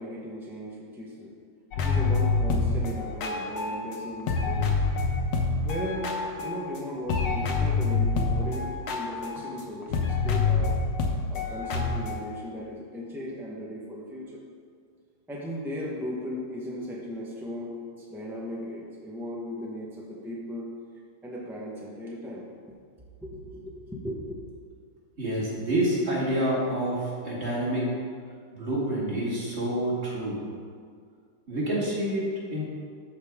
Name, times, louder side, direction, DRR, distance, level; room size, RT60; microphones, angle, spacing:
voice 1, 0.0-1.3 1.8-4.9 5.6-10.7 11.3-14.4 15.3-20.8 21.2-22.4 23.2-24.4, left 1 dB, 5° right, -4 dB, 0.3 m, -37 dB
sound 1, 1.7-4.0 4.3-6.8 7.1-12.2, left 4 dB, 65° left, 1.4 m, -27 dB
voice 2, 25.2-27.9 28.5-30.5 31.5-32.6, right 1 dB, 30° right, -7 dB, 2.2 m, -28 dB
13.0 x 4.9 x 3.6 m, 2.1 s
omnidirectional pair, 2.3 m